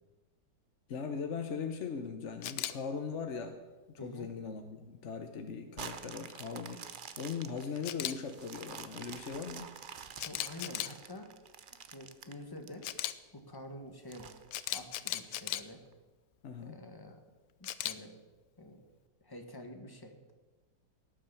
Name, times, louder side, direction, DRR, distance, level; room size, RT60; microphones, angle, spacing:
voice 1, 0.9-3.6 4.0-6.8 7.2-9.7 16.4-16.8, left 6 dB, 50° left, 6 dB, 1.1 m, -39 dB
Camera, 2.4-2.7 7.8-8.1 10.2-10.9 12.8-13.1 14.5-15.6 17.6-17.9, left 13 dB, 80° left, 1.3 m, -36 dB
voice 2, 4.0-4.3 10.2-11.3 11.9-12.9 13.3-14.3 14.7-15.8 16.6-17.2 17.6-18.1 18.6-18.8 19.2-20.3, left 1 dB, 15° left, 4 dB, 1.4 m, -47 dB
sound 1, 5.8-13.1 13.5-13.6 14.1-15.4 15.9-16.0, right 7 dB, 60° right, 0.5 m, -48 dB
17.5 x 7.7 x 7.0 m, 1.2 s
omnidirectional pair, 1.8 m